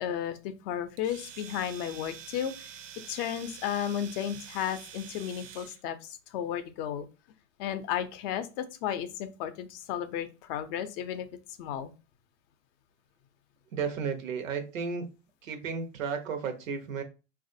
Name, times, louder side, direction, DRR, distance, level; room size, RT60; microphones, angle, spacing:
voice 1, 0.0-2.5 3.1-7.1 7.6-11.3 11.6-11.9, left 9 dB, 50° left, 10 dB, 0.5 m, -33 dB
Domestic sounds home sounds, 1.0-5.8, right 8 dB, 40° right, 0.5 m, -47 dB
voice 2, 13.7-15.0 15.4-17.0, right 6 dB, 90° right, 7 dB, 0.8 m, -33 dB
3.2 x 2.4 x 2.6 m, 0.30 s
hypercardioid pair, 115°, 38 cm